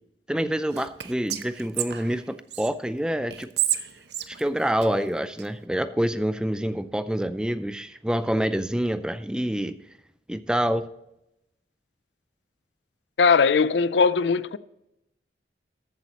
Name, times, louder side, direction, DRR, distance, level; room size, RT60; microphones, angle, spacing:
voice 1, 0.3-3.5 4.3-9.7 10.3-10.9, equal, 5° right, 0.4 m, -27 dB
Whispering, 0.7-2.7 3.3-5.5, right 11 dB, 80° right, 0.8 m, -31 dB
voice 2, 13.2-14.6, left 5 dB, 85° left, 0.5 m, -19 dB
14.5 x 8.3 x 2.9 m
head